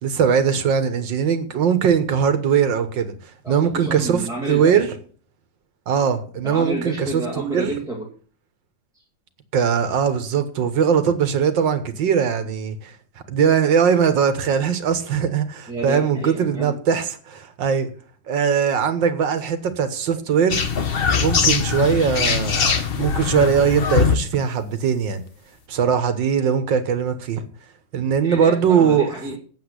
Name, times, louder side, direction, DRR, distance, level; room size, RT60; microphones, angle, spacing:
voice 1, 0.0-3.1 3.5-4.9 5.9-7.2 7.5-7.7 9.5-12.9 13.3-17.9 18.3-20.6 21.2-25.2 25.7-27.4 27.9-29.1, right 7 dB, 85° right, 2.0 m, -20 dB
voice 2, 3.4-4.9 6.4-8.1 8.9-9.0 15.7-16.8 28.2-29.4, right 2 dB, ahead, 2.2 m, -30 dB
sound 1, 20.5-24.1, left 6 dB, 40° left, 1.0 m, -21 dB
8.2 x 8.2 x 8.1 m
omnidirectional pair, 2.0 m